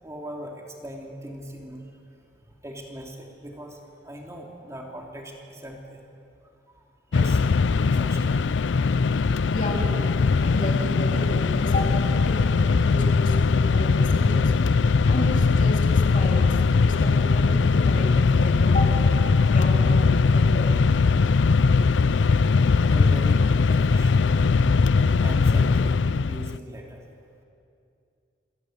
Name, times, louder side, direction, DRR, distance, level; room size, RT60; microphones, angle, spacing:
voice 1, 0.0-1.8 2.6-3.8 4.0-6.0 7.1-8.4 17.0-17.1 18.3-18.4 19.0-19.1 22.9-24.3 25.1-27.0, equal, 15° right, 0 dB, 3.0 m, -39 dB
Mechanisms, 7.1-26.6, left 4 dB, 85° left, 0.5 m, -20 dB
voice 2, 9.5-10.1 10.4-14.5 15.0-18.9 19.5-20.7, left 1 dB, 45° left, 0 dB, 3.4 m, -33 dB
27.5 x 17.0 x 9.4 m, 2.5 s
head